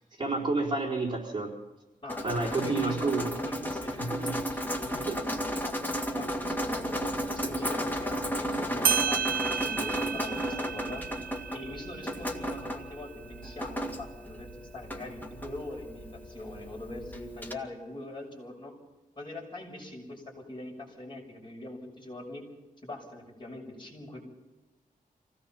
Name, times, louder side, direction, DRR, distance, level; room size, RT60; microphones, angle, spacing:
voice 1, 0.2-1.5 2.2-3.3 4.0-4.4 4.9-5.2, right 3 dB, 30° right, -3 dB, 4.3 m, -30 dB
voice 2, 2.0-2.9 3.3-11.2 11.5-18.7 19.1-22.4 22.8-24.2, left 1 dB, 35° left, -1 dB, 6.3 m, -42 dB
Drip, 2.1-17.5, equal, 10° left, 2.2 m, -34 dB
sound 1, 8.5-8.6 8.8-13.9, right 8 dB, 85° right, 0.9 m, -33 dB
26.5 x 17.5 x 5.8 m, 1.1 s
wide cardioid pair, 155°, 15 cm